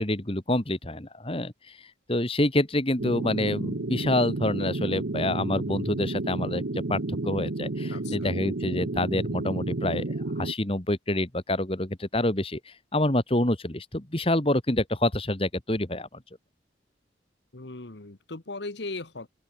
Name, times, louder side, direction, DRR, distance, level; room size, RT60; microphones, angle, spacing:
voice 1, 0.0-1.5 2.1-6.6 6.9-10.0 10.4-16.2, left 1 dB, 30° left, 2.1 m, -27 dB
sound 1, 3.0-10.5, right 2 dB, 75° right, 1.1 m, -31 dB
voice 2, 7.9-8.3 17.5-19.3, left 3 dB, 70° left, 1.4 m, -38 dB
open air
head